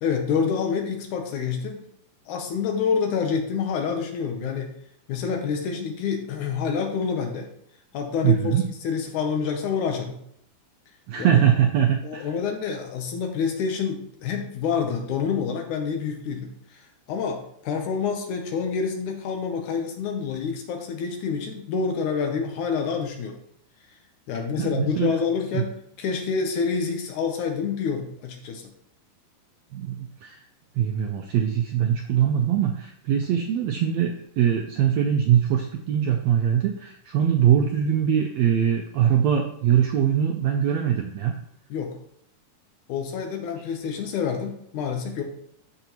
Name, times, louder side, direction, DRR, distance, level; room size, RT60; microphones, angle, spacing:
voice 1, 0.0-1.8 2.3-4.7 5.1-7.5 7.9-10.2 11.2-11.4 12.0-23.3 24.3-28.7 41.7-42.0 42.9-45.2, left 6 dB, 70° left, 3 dB, 2.3 m, -27 dB
voice 2, 8.2-8.7 11.1-12.3 24.6-25.1 25.5-25.6 29.7-30.4 30.8-41.3, right 9 dB, 90° right, 4 dB, 1.5 m, -22 dB
12.5 x 5.0 x 3.0 m, 0.71 s
omnidirectional pair, 3.8 m